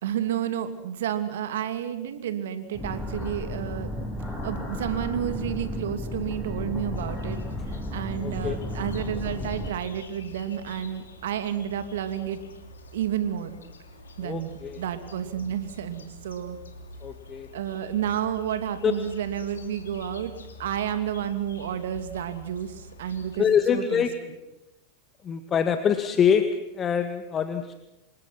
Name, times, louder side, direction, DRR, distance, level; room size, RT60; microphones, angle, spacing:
voice 1, 0.0-3.9 4.4-7.4 7.9-12.4 12.9-13.5 14.2-16.6 17.5-20.3 20.6-22.7 23.0-24.0, right 10 dB, 70° right, 9 dB, 2.8 m, -30 dB
sound 1, 2.7-9.7, left 1 dB, 5° left, 7.8 m, -33 dB
sound 2, 6.9-23.5, left 2 dB, 85° left, 3.1 m, -46 dB
voice 2, 8.2-8.6 14.2-14.8 17.0-17.5 18.8-18.9 23.4-24.2 25.2-27.7, left 7 dB, 30° left, 8 dB, 1.9 m, -24 dB
28.0 x 25.5 x 6.1 m, 0.95 s
hypercardioid pair, 85°, 0 cm